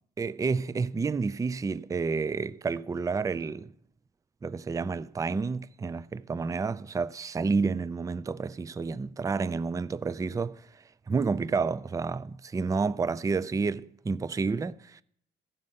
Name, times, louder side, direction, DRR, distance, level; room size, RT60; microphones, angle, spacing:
voice 1, 0.2-3.7 4.4-15.0, right 4 dB, 15° right, 0.4 m, -30 dB
14.5 x 5.4 x 5.6 m
cardioid pair, 90°, 20 cm